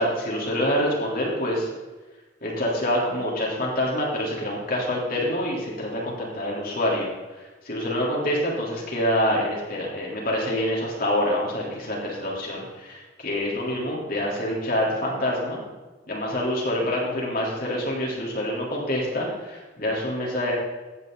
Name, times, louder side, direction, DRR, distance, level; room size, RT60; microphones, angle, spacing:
voice 1, 0.0-1.7 2.4-7.1 7.4-15.6 16.1-20.5, left 1 dB, 50° left, -3 dB, 3.5 m, -26 dB
15.5 x 9.7 x 4.0 m, 1.2 s
head